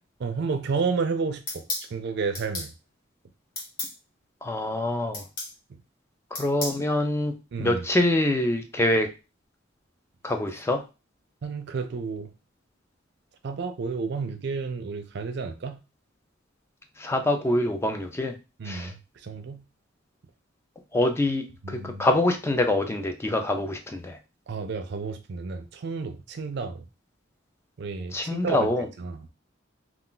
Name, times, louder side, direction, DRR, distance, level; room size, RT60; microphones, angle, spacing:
voice 1, 0.2-1.6 1.9-2.7 5.7-5.8 7.5-7.9 11.4-12.3 13.4-15.8 18.6-19.6 21.6-22.1 24.5-26.8 27.8-28.7 29.0-29.3, right 4 dB, 60° right, 0.4 m, -31 dB
sound 1, 1.5-1.9 2.3-2.7 3.6-3.9 5.1-5.5 6.3-6.8, left 2 dB, 45° left, 1.1 m, -33 dB
voice 2, 4.4-5.2 6.3-7.3 7.6-9.1 10.2-10.8 17.0-18.3 18.7-18.9 20.9-24.2 28.1-28.9, left 1 dB, 15° left, 0.3 m, -25 dB
2.3 x 2.3 x 3.7 m
head